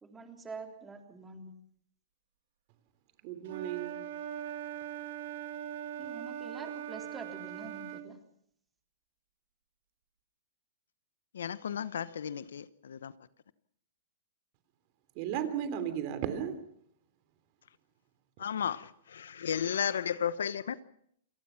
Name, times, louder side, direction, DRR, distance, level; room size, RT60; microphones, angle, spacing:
voice 1, 0.0-1.6 6.0-8.2, right 3 dB, 10° right, 4 dB, 3.5 m, -46 dB
voice 2, 3.2-4.0 15.1-16.6 18.4-18.5, right 9 dB, 40° right, 11 dB, 3.3 m, -35 dB
Wind instrument woodwind instrument, 3.5-8.1, right 10 dB, 60° right, 2.2 m, -40 dB
voice 3, 11.3-13.1 18.4-20.8, left 8 dB, 80° left, 16 dB, 1.0 m, -34 dB
27.5 x 18.5 x 5.9 m, 0.70 s
hypercardioid pair, 140°, 0 cm